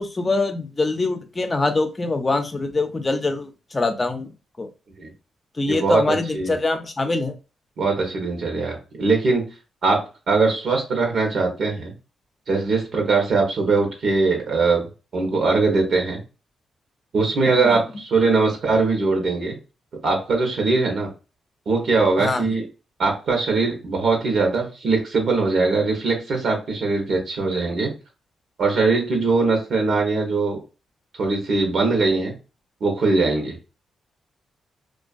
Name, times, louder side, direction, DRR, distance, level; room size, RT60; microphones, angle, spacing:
voice 1, 0.0-4.7 5.6-7.3 17.6-17.8 22.2-22.5, left 3 dB, 30° left, 7 dB, 0.6 m, -24 dB
voice 2, 5.7-6.6 7.8-9.4 9.8-10.0 10.3-11.9 12.5-14.9 15.1-16.2 17.1-19.5 20.0-21.1 21.7-22.6 23.0-27.9 28.6-30.6 31.1-32.3 32.8-33.6, right 3 dB, 70° right, 1 dB, 0.9 m, -21 dB
2.5 x 2.3 x 2.4 m, 0.32 s
supercardioid pair, 55°, 0 cm